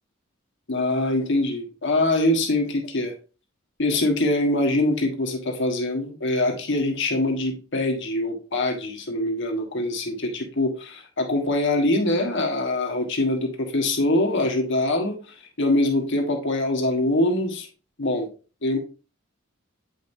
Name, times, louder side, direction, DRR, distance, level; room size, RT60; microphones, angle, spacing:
voice 1, 0.7-3.1 3.8-17.7 18.0-18.3 18.6-18.8, left 1 dB, 60° left, 1.4 m, -24 dB
8.4 x 5.2 x 2.7 m
head